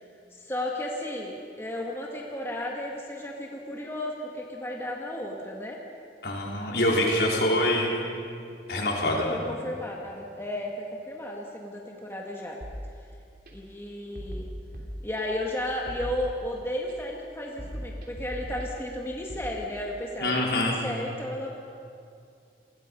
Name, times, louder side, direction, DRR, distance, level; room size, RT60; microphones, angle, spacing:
voice 1, 0.4-5.8 6.8-7.6 9.3-12.6 13.5-14.5 15.0-21.5, left 1 dB, 15° left, -1 dB, 1.9 m, -34 dB
voice 2, 6.2-8.0 8.7-9.4 20.2-20.8, left 1 dB, 70° left, -2 dB, 4.4 m, -25 dB
sound 1, 12.6-13.5 14.2-15.5 15.9-16.9 17.6-19.5, equal, 55° right, 3.3 m, -39 dB
29.0 x 21.0 x 5.5 m, 2.4 s
head